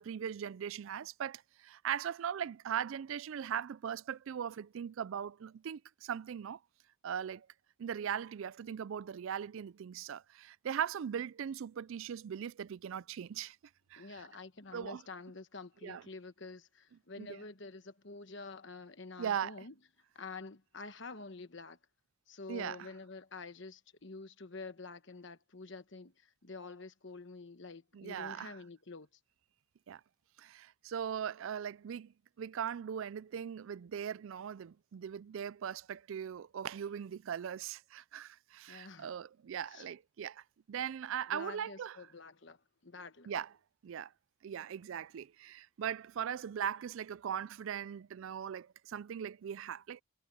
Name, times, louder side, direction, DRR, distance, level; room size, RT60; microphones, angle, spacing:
voice 1, 0.0-6.6 7.0-7.5 7.8-13.6 13.9-14.1 14.7-15.0 15.8-16.0 17.2-17.4 19.2-19.5 22.5-22.9 27.9-28.6 29.9-30.0 30.4-42.0 43.3-43.5 43.8-44.1 44.4-50.0, right 8 dB, 65° right, 0.3 m, -39 dB
voice 2, 13.9-19.7 20.1-21.8 22.3-29.1 38.7-39.1 39.7-39.9 41.3-43.3, left 3 dB, 55° left, 1.3 m, -48 dB
head